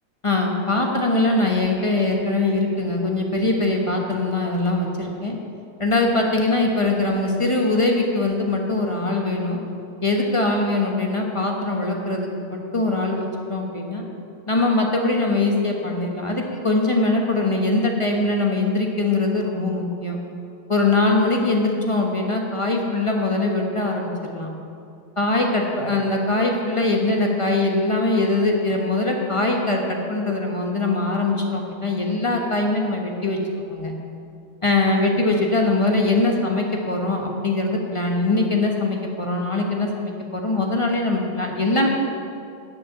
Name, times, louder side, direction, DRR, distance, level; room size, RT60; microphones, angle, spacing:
voice 1, 0.2-5.4 5.8-9.6 10.0-14.0 14.5-20.2 20.7-24.5 25.2-33.9 34.6-41.9, left 2 dB, 30° left, 1 dB, 0.6 m, -22 dB
11.0 x 6.6 x 8.8 m, 2.5 s
omnidirectional pair, 2.2 m